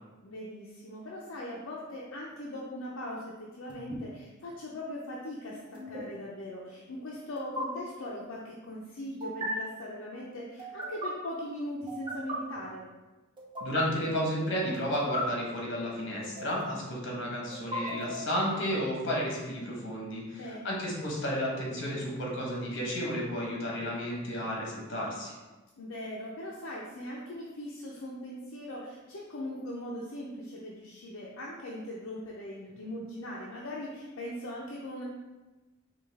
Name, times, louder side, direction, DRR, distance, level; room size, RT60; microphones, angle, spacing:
voice 1, 0.2-12.8 20.3-20.8 25.8-35.0, left 1 dB, 80° left, -4 dB, 0.6 m, -40 dB
sound 1, 3.7-4.0 5.7-6.0 7.4-7.6 9.2-9.5 10.6-11.1 11.9-12.4 13.4-13.8 14.7-15.2 16.2-16.8 17.5-18.4, equal, 25° right, 0.7 m, -37 dB
voice 2, 13.6-25.4, equal, 65° left, -3 dB, 1.2 m, -32 dB
5.2 x 2.4 x 3.4 m, 1.2 s
head